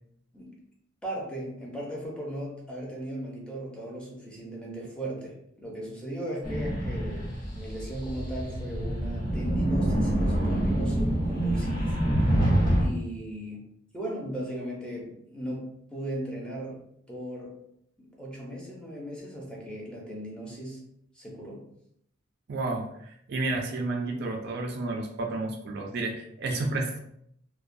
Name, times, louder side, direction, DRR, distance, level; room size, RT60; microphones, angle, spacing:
voice 1, 1.0-12.3 12.8-16.8 17.1-17.6 18.0-20.8 21.1-21.6, right 1 dB, 5° left, -4 dB, 0.6 m, -37 dB
sound 1, 6.4-12.9, right 1 dB, 50° left, 1.0 m, -26 dB
voice 2, 22.5-27.0, right 2 dB, 55° right, 2 dB, 0.3 m, -31 dB
2.2 x 2.2 x 2.5 m, 0.72 s
head